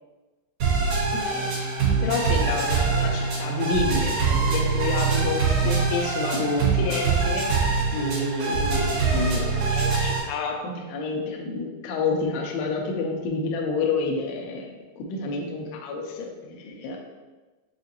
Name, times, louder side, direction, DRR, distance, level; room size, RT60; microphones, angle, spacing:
sound 1, 0.6-10.2, right 4 dB, 60° right, 2.2 m, -24 dB
voice 1, 2.0-14.7 15.0-17.0, left 3 dB, 85° left, 1 dB, 2.5 m, -29 dB
7.1 x 2.5 x 2.8 m, 1.2 s
omnidirectional pair, 5.4 m